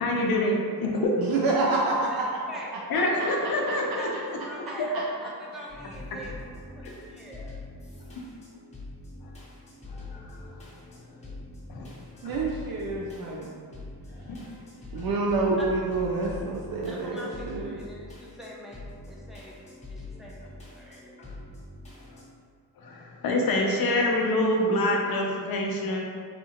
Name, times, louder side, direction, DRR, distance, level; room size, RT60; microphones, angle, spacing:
voice 1, 0.0-1.1 2.9-4.1 4.8-4.9 9.9-10.4 11.7-11.9 12.2-12.4 14.2-14.4 15.0-15.1 21.2-21.4 22.8-26.0, left 1 dB, 65° left, 0 dB, 0.6 m, -26 dB
voice 2, 1.2-2.3 2.7-3.5 3.9-4.0 4.9-5.3 12.2-13.6 14.9-17.7, right 3 dB, 65° right, -3 dB, 0.5 m, -28 dB
voice 3, 3.3-6.4 6.7-7.5 15.6-15.7 16.9-19.6 19.9-20.4 20.7-21.2, equal, ahead, -4 dB, 0.4 m, -44 dB
sound 1, 5.7-22.3, left 2 dB, 15° left, 1.0 m, -44 dB
4.2 x 2.4 x 2.8 m, 2.1 s
wide cardioid pair, 155°, 39 cm